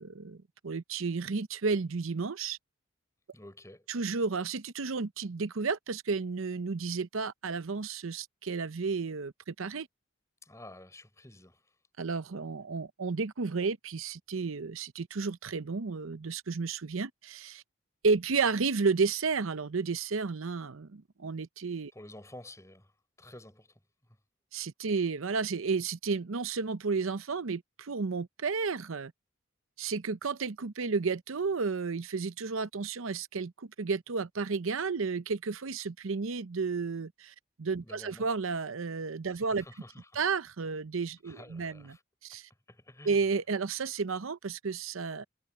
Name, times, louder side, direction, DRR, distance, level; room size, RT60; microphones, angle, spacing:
voice 1, 0.0-2.6 3.9-9.9 12.0-17.6 18.0-21.9 24.5-29.1 29.8-39.6 40.1-42.0 42.2-42.5 43.0-45.2, right 4 dB, 85° right, 0.7 m, -32 dB
voice 2, 3.3-3.9 10.4-11.6 21.9-22.9 23.2-23.7 37.8-38.3 39.3-40.2 41.2-42.0 42.7-43.2, left 1 dB, 15° left, 4.4 m, -50 dB
head